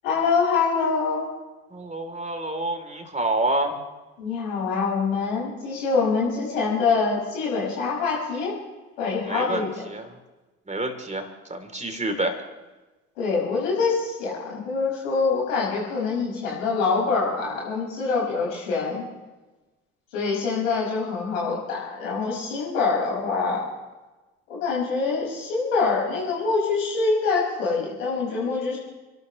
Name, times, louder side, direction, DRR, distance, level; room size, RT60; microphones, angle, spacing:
voice 1, 0.0-1.3 4.2-8.5 9.0-9.9 13.2-19.0 20.1-23.7 24.5-28.8, left 4 dB, 80° left, -4 dB, 5.8 m, -25 dB
voice 2, 1.7-3.8 9.3-9.6 9.9-10.1 10.7-12.3, right 2 dB, 20° right, 4 dB, 3.4 m, -28 dB
30.0 x 12.5 x 3.2 m, 1.2 s
figure-of-eight pair, 50°, 39 cm